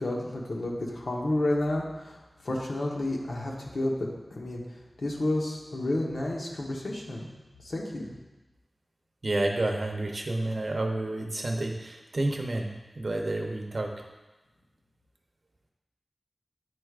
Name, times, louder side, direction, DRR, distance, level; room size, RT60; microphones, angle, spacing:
voice 1, 0.0-2.2 2.4-4.6 5.0-7.3 7.6-8.1, left 1 dB, 80° left, -1 dB, 1.0 m, -30 dB
voice 2, 9.2-12.7 13.0-13.9, right 2 dB, 55° right, 2 dB, 0.8 m, -29 dB
9.4 x 4.6 x 2.4 m, 1.1 s
wide cardioid pair, 80°, 0 cm